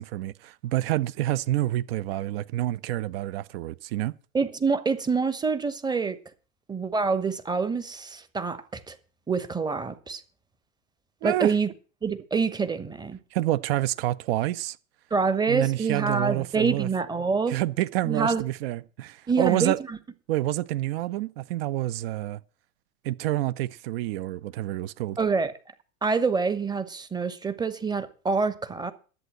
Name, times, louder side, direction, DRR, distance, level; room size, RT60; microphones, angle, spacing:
voice 1, 0.0-4.1 11.2-11.5 13.3-14.8 15.5-16.9 17.5-19.8 20.3-22.4 23.0-25.2, right 15 dB, 45° right, 0.7 m, -28 dB
voice 2, 4.3-6.2 6.7-9.0 9.3-10.2 11.2-11.7 12.0-13.2 15.1-17.5 18.0-18.4 19.3-20.0 25.2-25.5 26.0-28.9, right 5 dB, 10° right, 1.0 m, -26 dB
11.0 x 8.2 x 7.4 m
hypercardioid pair, 100°, 41 cm